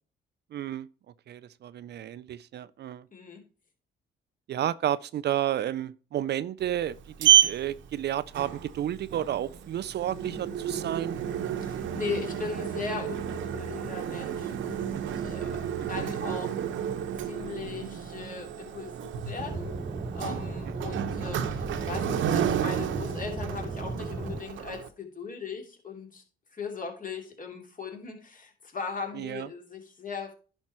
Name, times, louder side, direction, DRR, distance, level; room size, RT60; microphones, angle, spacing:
voice 1, 0.5-0.9 1.3-3.1 4.5-11.2 14.9-15.1 15.8-16.1 29.1-29.5, right 11 dB, 60° right, 0.5 m, -32 dB
voice 2, 3.1-3.4 11.6-16.5 17.2-19.8 20.1-26.2 26.5-30.3, left 5 dB, 45° left, 2.9 m, -39 dB
Sliding door, 6.6-24.9, right 10 dB, 75° right, 0.9 m, -30 dB
Aircraft / Engine, 19.4-24.4, right 3 dB, 35° right, 1.2 m, -35 dB
10.5 x 5.4 x 4.3 m
cardioid pair, 90°, 20 cm